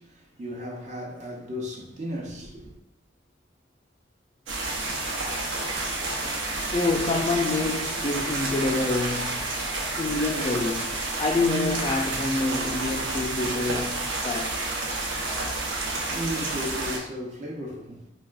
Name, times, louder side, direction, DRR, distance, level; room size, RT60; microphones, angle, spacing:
voice 1, 0.0-2.7 15.8-18.0, equal, 40° right, 0.6 m, -35 dB
sound 1, 4.5-17.0, right 2 dB, 85° right, 0.8 m, -30 dB
voice 2, 6.7-9.5 10.0-14.6, left 2 dB, 30° left, 0.3 m, -27 dB
5.3 x 2.3 x 2.4 m
head